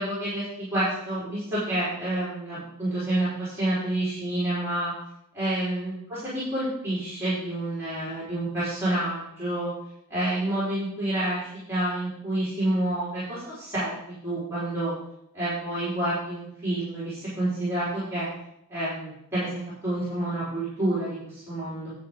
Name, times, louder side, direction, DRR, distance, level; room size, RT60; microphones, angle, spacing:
voice 1, 0.0-4.9 5.3-9.7 10.1-14.9 15.3-18.3 18.7-21.9, right 1 dB, 10° right, -12 dB, 4.3 m, -29 dB
10.5 x 9.4 x 3.7 m, 0.78 s
head